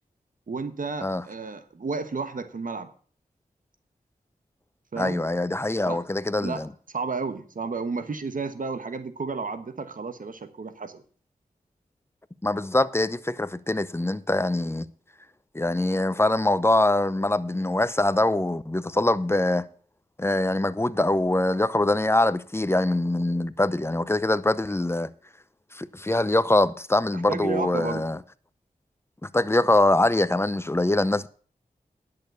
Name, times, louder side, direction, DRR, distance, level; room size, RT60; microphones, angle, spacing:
voice 1, 0.5-2.9 4.9-5.2 5.9-6.0 6.4-11.0 27.1-28.1, right 4 dB, 65° right, 1.1 m, -32 dB
voice 2, 5.0-6.7 12.4-14.9 15.5-19.6 20.2-25.1 25.7-28.2 29.3-31.3, left 2 dB, 15° left, 0.7 m, -23 dB
10.5 x 6.8 x 6.7 m
cardioid pair, 40°, 15 cm